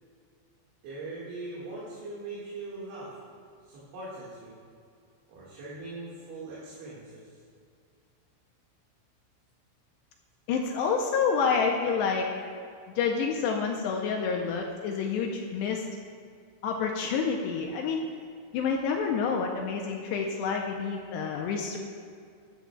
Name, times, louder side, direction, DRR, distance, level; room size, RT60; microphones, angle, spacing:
voice 1, 0.8-3.2 3.7-4.6 5.3-7.4, right 2 dB, 75° right, -8 dB, 4.2 m, -41 dB
voice 2, 10.5-12.3 13.0-15.9 16.6-18.1 18.5-21.8, left 5 dB, 80° left, 1 dB, 2.5 m, -28 dB
15.5 x 11.5 x 2.4 m, 2.3 s
omnidirectional pair, 5.5 m